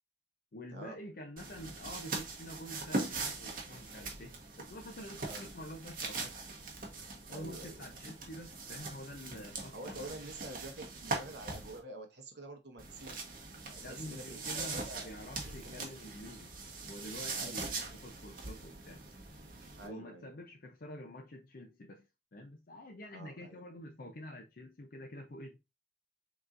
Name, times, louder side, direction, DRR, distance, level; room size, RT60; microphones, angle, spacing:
voice 1, 0.5-6.4 7.3-10.2 13.8-16.5 16.8-19.0 19.8-25.6, left 1 dB, 55° left, 0.6 m, -48 dB
sound 1, 1.4-11.8 12.8-19.9, right 3 dB, 50° right, 1.3 m, -42 dB
voice 2, 7.3-7.8 9.7-13.2 13.6-15.1 15.4-15.8 17.3-17.6 19.8-20.3 23.1-23.6, right 1 dB, 65° right, 0.9 m, -48 dB
6.6 x 3.0 x 2.5 m
head